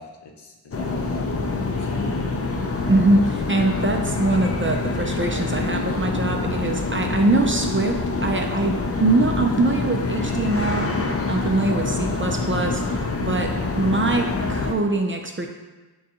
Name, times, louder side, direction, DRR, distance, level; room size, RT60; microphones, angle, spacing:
voice 1, 0.0-2.5, left 2 dB, 80° left, 2 dB, 0.6 m, -40 dB
sound 1, 0.7-14.7, left 3 dB, 35° left, 0.4 m, -26 dB
voice 2, 2.9-7.9 8.2-15.5, right 2 dB, 30° right, 3 dB, 0.4 m, -23 dB
6.4 x 2.3 x 2.8 m, 1.2 s
wide cardioid pair, 60°, 41 cm